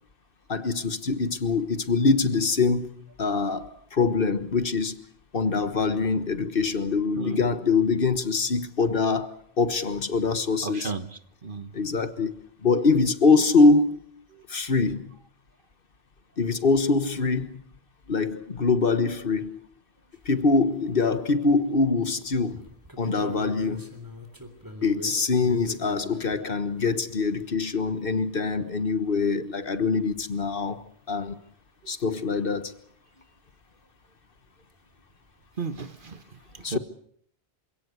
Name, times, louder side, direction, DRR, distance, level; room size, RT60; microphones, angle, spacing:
voice 1, 0.5-5.0 5.3-10.9 11.7-14.0 14.5-15.1 16.4-17.6 18.1-19.6 20.2-22.6 23.0-23.9 24.8-31.4 31.9-32.7 36.6-36.8, left 4 dB, 60° left, 1.5 m, -24 dB
voice 2, 7.2-7.5 10.6-11.7 14.3-14.4 35.6-36.8, right 4 dB, 55° right, 1.6 m, -35 dB
sound 1, 20.1-20.2 20.6-21.7 22.1-26.4 29.0-29.1 29.3-29.4 30.4-30.5 31.1-31.2 34.8-34.9 35.0-35.5, equal, 20° right, 3.5 m, -43 dB
27.0 x 17.5 x 8.3 m
omnidirectional pair, 1.0 m